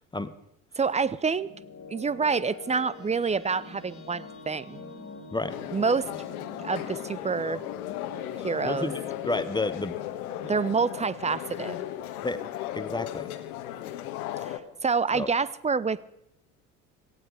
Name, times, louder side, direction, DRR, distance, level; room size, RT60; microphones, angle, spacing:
sound 1, 0.8-11.8, left 3 dB, 30° left, 2.5 m, -47 dB
voice 1, 0.8-1.5 1.9-4.8 5.7-6.1 6.6-7.6 8.4-8.9 10.5-11.8 14.4-14.5 14.8-16.0, right 5 dB, 15° right, 19 dB, 0.6 m, -27 dB
sound 2, 5.5-14.6, left 12 dB, 75° left, 1.3 m, -36 dB
voice 2, 8.6-10.0 12.2-12.4 12.7-13.3 15.1-15.3, left 2 dB, 10° left, 12 dB, 1.1 m, -30 dB
18.5 x 15.0 x 4.9 m, 0.81 s
figure-of-eight pair, 60°, 44 cm